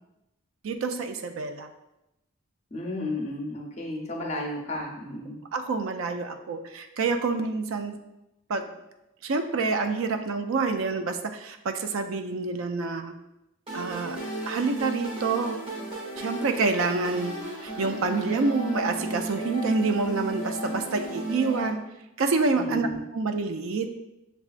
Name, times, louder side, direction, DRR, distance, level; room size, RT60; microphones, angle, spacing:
voice 1, 0.6-1.7 5.5-7.9 8.5-8.7 9.2-13.2 13.7-14.2 14.5-15.6 16.2-17.3 17.6-21.8 22.2-22.9 23.1-23.9, right 4 dB, 75° right, 7 dB, 0.4 m, -27 dB
voice 2, 2.7-5.4 22.5-23.0, left 1 dB, 30° left, 0 dB, 0.6 m, -33 dB
sound 1, 13.7-21.7, right 1 dB, 25° right, 1.0 m, -34 dB
6.9 x 2.3 x 2.4 m, 0.91 s
head